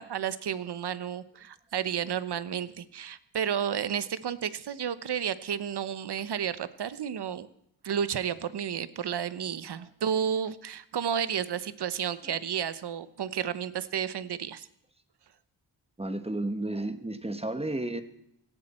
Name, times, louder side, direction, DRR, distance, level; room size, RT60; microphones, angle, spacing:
voice 1, 0.0-7.5 7.8-14.7, right 8 dB, 70° right, 15 dB, 1.0 m, -32 dB
voice 2, 16.0-18.0, right 2 dB, 15° right, 9 dB, 1.3 m, -32 dB
18.0 x 15.5 x 4.3 m, 0.76 s
wide cardioid pair, 115°, 42 cm